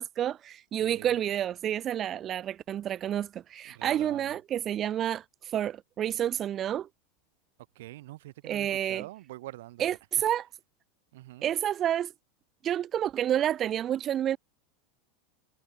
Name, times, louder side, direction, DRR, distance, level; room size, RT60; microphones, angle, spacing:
voice 1, 0.0-6.9 8.4-9.0 9.8-10.5 11.4-12.1 12.6-14.4, right 10 dB, 30° right, 0.3 m, -29 dB
voice 2, 0.8-1.1 3.7-4.3 7.8-10.0 11.1-11.5, right 17 dB, 75° right, 0.6 m, -45 dB
supercardioid pair, 140°, 0 cm